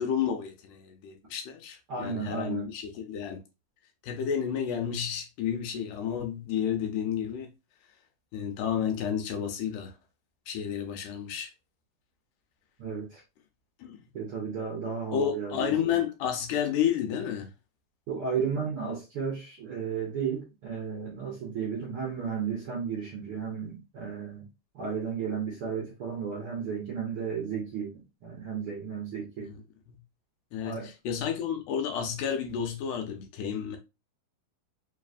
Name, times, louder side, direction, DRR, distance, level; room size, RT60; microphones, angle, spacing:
voice 1, 0.0-3.4 4.0-7.5 8.3-9.9 10.5-11.5 13.8-14.0 15.1-17.5 29.4-30.0 30.5-33.8, left 8 dB, 80° left, 2.1 m, -31 dB
voice 2, 1.9-2.7 12.8-13.2 14.1-15.7 18.1-24.4 24.7-29.5 30.6-30.9, right 6 dB, 65° right, 1.4 m, -33 dB
4.8 x 3.1 x 2.5 m
omnidirectional pair, 3.9 m